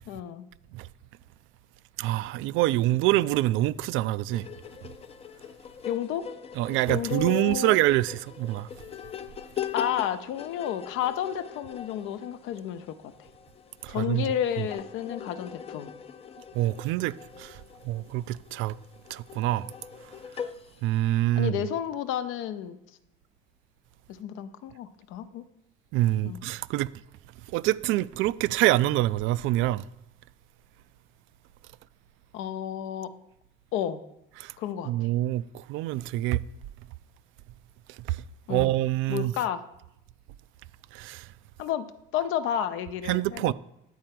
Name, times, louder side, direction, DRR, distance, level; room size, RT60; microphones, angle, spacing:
voice 1, 0.1-0.4 5.9-6.3 6.9-7.8 9.7-13.1 13.9-15.9 21.4-22.8 24.1-25.4 26.2-26.4 32.3-33.1 33.7-34.0 34.6-35.1 38.5-38.7 39.1-39.6 41.6-43.5, left 9 dB, 70° left, 0.8 m, -31 dB
voice 2, 2.0-4.5 6.6-8.7 13.8-14.2 16.5-17.6 17.8-18.8 19.1-19.7 20.8-21.5 25.9-26.9 27.5-29.8 34.4-34.5 34.9-36.4 38.1-38.2 38.5-39.3 40.9-41.3 43.1-43.5, right 16 dB, 70° right, 0.4 m, -26 dB
sound 1, 4.3-21.2, left 8 dB, 30° left, 0.5 m, -42 dB
10.0 x 4.4 x 7.6 m
cardioid pair, 125°, 21 cm